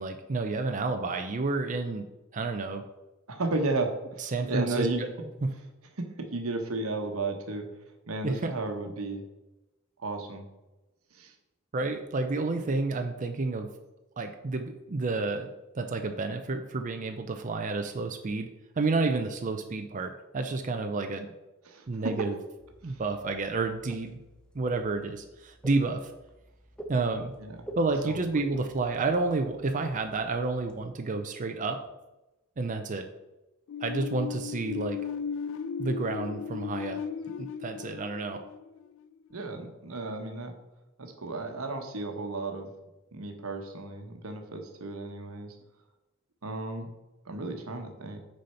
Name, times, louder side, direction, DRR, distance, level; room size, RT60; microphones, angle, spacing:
voice 1, 0.0-2.1 2.3-2.8 4.2-5.1 5.4-5.5 8.2-8.5 11.7-13.7 14.2-15.5 15.8-18.5 18.8-21.3 21.9-22.3 22.8-24.2 24.5-26.1 26.9-27.3 27.8-31.8 32.6-33.1 33.8-35.0 35.8-37.0 37.4-38.4, right 3 dB, 35° right, 5 dB, 0.5 m, -30 dB
voice 2, 3.3-5.1 6.0-7.7 8.1-9.2 10.0-10.5 11.1-11.3 21.7-22.1 22.8-23.0 27.4-27.6 28.0-28.4 39.3-40.5 41.0-42.7 43.1-45.6 46.4-46.9 47.2-48.2, right 2 dB, 70° right, 5 dB, 1.1 m, -33 dB
sound 1, 22.6-30.9, right 1 dB, 5° left, 0.7 m, -49 dB
sound 2, 33.7-39.4, left 7 dB, 60° left, 0.3 m, -36 dB
6.4 x 4.2 x 5.6 m, 1.0 s
head